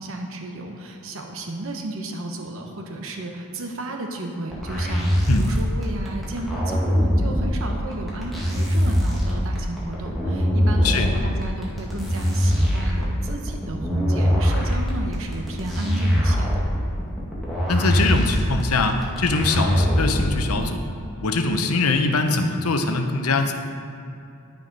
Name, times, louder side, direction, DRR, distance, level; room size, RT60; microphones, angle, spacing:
voice 1, 0.0-16.5, right 1 dB, 65° right, 3 dB, 1.0 m, -33 dB
sound 1, 4.5-20.5, equal, ahead, 2.2 m, -22 dB
voice 2, 17.7-20.9 21.2-23.5, left 3 dB, 85° left, 6 dB, 0.8 m, -22 dB
10.5 x 7.0 x 5.3 m, 2.7 s
head